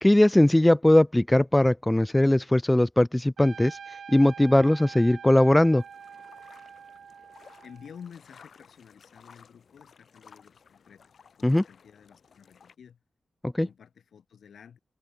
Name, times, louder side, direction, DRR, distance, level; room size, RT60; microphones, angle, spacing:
voice 1, 0.0-3.8 4.1-5.8 11.4-11.6 13.4-13.7, left 1 dB, 10° left, 0.3 m, -20 dB
Trumpet, 3.4-8.1, right 7 dB, 75° right, 2.6 m, -45 dB
sound 1, 5.8-12.8, left 6 dB, 60° left, 2.6 m, -56 dB
voice 2, 7.6-13.0 13.6-14.8, left 7 dB, 80° left, 3.5 m, -50 dB
open air
wide cardioid pair, 180°, 0 cm